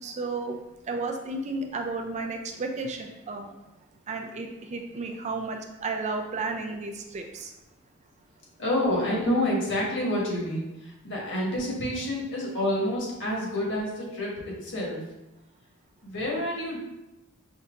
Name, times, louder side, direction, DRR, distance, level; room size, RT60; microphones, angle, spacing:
voice 1, 0.0-0.6 0.9-3.5 4.1-7.5, right 3 dB, 30° right, 4 dB, 0.4 m, -33 dB
voice 2, 8.6-15.0 16.0-16.8, left 1 dB, 55° left, -3 dB, 1.3 m, -28 dB
5.3 x 2.7 x 2.5 m, 0.94 s
head